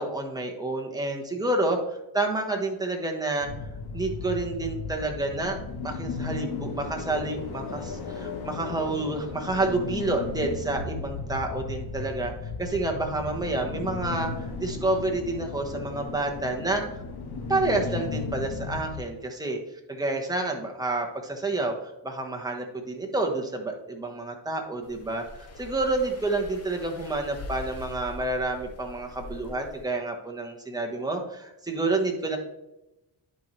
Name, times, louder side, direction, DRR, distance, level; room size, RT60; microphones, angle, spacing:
voice 1, 0.0-1.8 2.1-3.5 3.9-5.6 5.8-12.3 12.6-16.8 17.5-19.6 19.9-32.4, right 2 dB, 10° right, 1 dB, 1.3 m, -29 dB
sound 1, 3.4-19.0, left 4 dB, 80° left, 1.4 m, -35 dB
sound 2, 24.8-29.8, left 1 dB, 40° left, 1.2 m, -43 dB
10.5 x 4.5 x 3.3 m, 0.94 s
cardioid pair, 120°, 39 cm